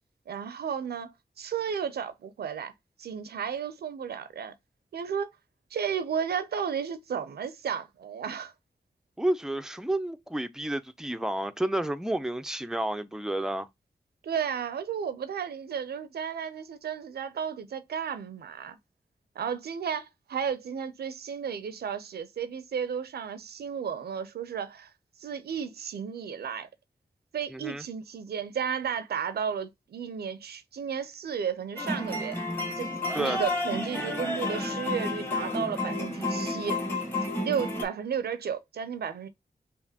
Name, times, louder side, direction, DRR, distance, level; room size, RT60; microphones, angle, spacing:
voice 1, 0.3-2.7 3.0-4.5 4.9-5.3 5.7-8.5 14.2-18.8 19.4-24.9 25.2-26.7 27.3-32.4 32.8-36.8 37.4-39.3, right 7 dB, 85° right, 0.5 m, -33 dB
voice 2, 9.2-13.7 27.5-27.8 33.1-33.4, right 1 dB, 5° right, 0.4 m, -30 dB
sound 1, 31.8-37.8, left 2 dB, 15° left, 1.3 m, -31 dB
4.9 x 2.5 x 2.8 m
cardioid pair, 40°, 16 cm